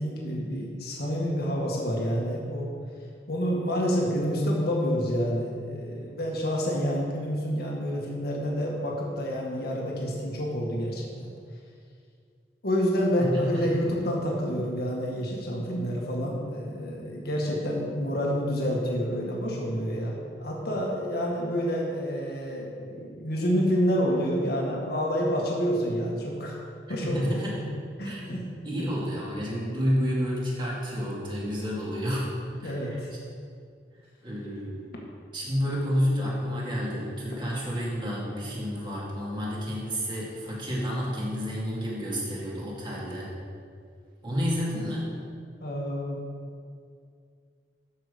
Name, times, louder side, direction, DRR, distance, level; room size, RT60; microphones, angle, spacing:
voice 1, 0.0-2.7 3.3-11.3 12.6-26.6 26.9-27.4 28.0-28.4 32.6-33.1 35.6-35.7 44.7-44.8 45.6-46.2, equal, 60° left, -2 dB, 1.8 m, -28 dB
voice 2, 13.2-13.9 27.0-27.7 28.0-32.3 32.6-33.0 34.2-34.9 35.3-43.3 44.2-45.1, equal, 30° right, -6 dB, 2.4 m, -30 dB
13.0 x 6.0 x 5.1 m, 2.2 s
head